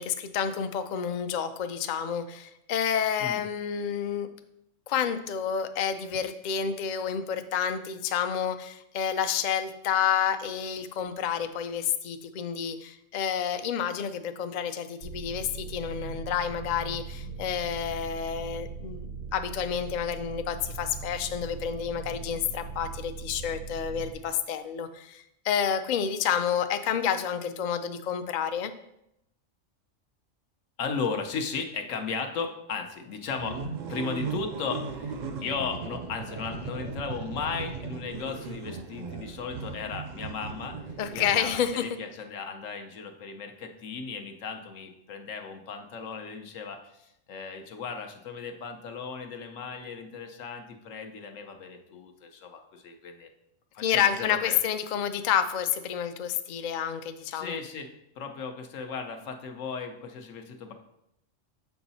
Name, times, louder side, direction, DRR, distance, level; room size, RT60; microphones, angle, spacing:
voice 1, 0.0-4.3 4.9-28.7 41.0-41.8 53.8-57.6, left 8 dB, 65° left, 9 dB, 0.4 m, -29 dB
sound 1, 15.0-24.1, right 5 dB, 90° right, 1.1 m, -40 dB
voice 2, 30.8-33.6 33.9-53.3 53.7-54.6 57.3-57.9 58.2-60.7, left 5 dB, 85° left, 5 dB, 1.2 m, -36 dB
sound 2, 33.4-41.9, right 5 dB, 60° right, 0.5 m, -37 dB
6.9 x 4.7 x 4.1 m, 0.80 s
omnidirectional pair, 1.3 m